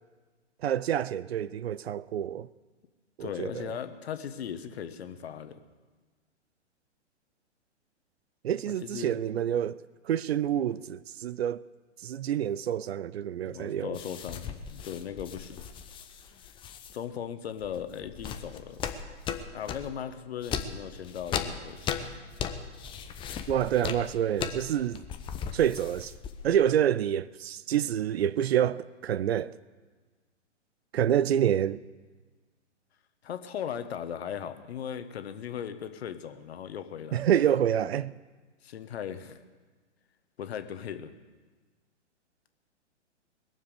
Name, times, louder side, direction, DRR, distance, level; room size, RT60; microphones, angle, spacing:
voice 1, 0.6-2.5 3.2-3.7 8.4-9.8 10.0-11.6 12.0-14.0 23.5-25.0 25.5-26.1 26.4-29.6 30.9-31.8 37.1-38.1, right 10 dB, 60° right, 0.5 m, -27 dB
voice 2, 3.2-5.6 8.7-9.2 13.4-15.6 16.9-18.9 19.5-22.1 33.2-37.3 38.6-39.4 40.4-41.1, left 8 dB, 60° left, 1.4 m, -38 dB
sound 1, 13.9-17.0 17.6-19.9 20.4-26.6, left 7 dB, 15° left, 0.7 m, -37 dB
21.0 x 7.3 x 8.4 m
figure-of-eight pair, 120°, 36 cm